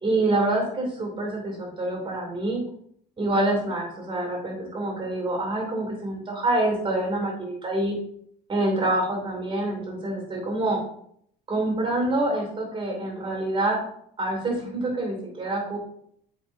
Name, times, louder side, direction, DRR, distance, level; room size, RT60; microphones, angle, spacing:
voice 1, 0.0-2.6 3.2-8.0 8.5-10.8 11.5-13.8 14.2-15.8, right 2 dB, 25° right, 0 dB, 2.6 m, -26 dB
8.0 x 5.1 x 2.7 m, 0.67 s
cardioid pair, 140°, 20 cm